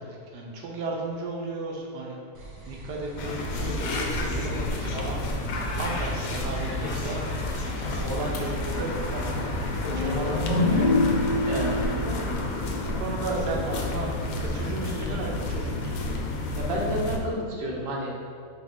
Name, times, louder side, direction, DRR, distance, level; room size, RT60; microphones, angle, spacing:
voice 1, 0.0-2.2 2.7-5.2 5.7-7.2 7.5-10.8 11.9-12.2 12.7-16.1, right 2 dB, 85° right, -1 dB, 1.3 m, -34 dB
sound 1, 2.3-11.8, right 1 dB, 70° right, 1.2 m, -41 dB
sound 2, 3.2-17.2, left 2 dB, 70° left, 0.9 m, -30 dB
sound 3, 9.8-13.5, left 2 dB, 35° right, 0.4 m, -26 dB
voice 2, 11.4-12.1 16.5-18.1, equal, 50° right, -2 dB, 0.8 m, -31 dB
4.3 x 3.2 x 3.6 m, 2.4 s
omnidirectional pair, 1.7 m